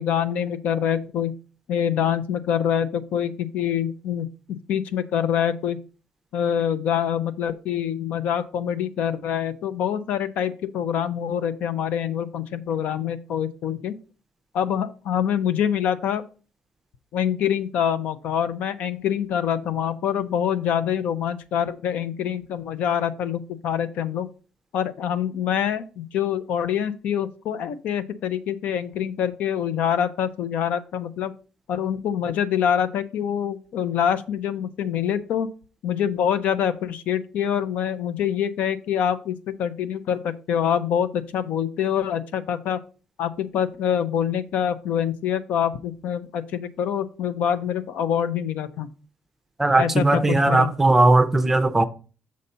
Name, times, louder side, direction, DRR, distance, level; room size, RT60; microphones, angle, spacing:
voice 1, 0.0-1.3 1.7-4.3 4.7-5.8 6.3-14.0 14.5-16.2 17.1-24.3 24.7-31.3 31.7-35.5 35.8-42.8 43.2-48.9 49.8-50.7, left 9 dB, 75° left, 0.6 m, -25 dB
voice 2, 49.6-51.9, right 2 dB, 10° right, 0.5 m, -18 dB
6.4 x 4.0 x 5.5 m
cardioid pair, 155°, 3 cm